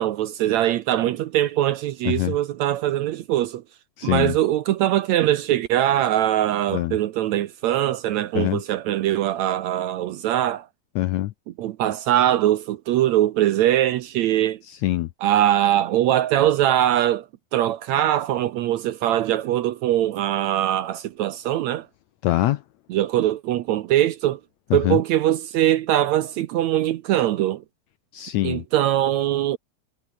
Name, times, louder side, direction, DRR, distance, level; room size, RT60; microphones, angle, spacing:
voice 1, 0.0-3.6 4.0-10.7 11.6-14.6 15.2-17.3 17.5-21.9 22.9-24.4 24.7-27.6 28.4-29.6, right 12 dB, 75° right, 1.7 m, -22 dB
voice 2, 4.0-4.3 6.7-7.0 8.3-8.6 10.9-11.3 14.7-15.1 22.2-22.6 24.7-25.0 28.1-28.6, left 15 dB, 75° left, 1.7 m, -23 dB
omnidirectional pair, 4.0 m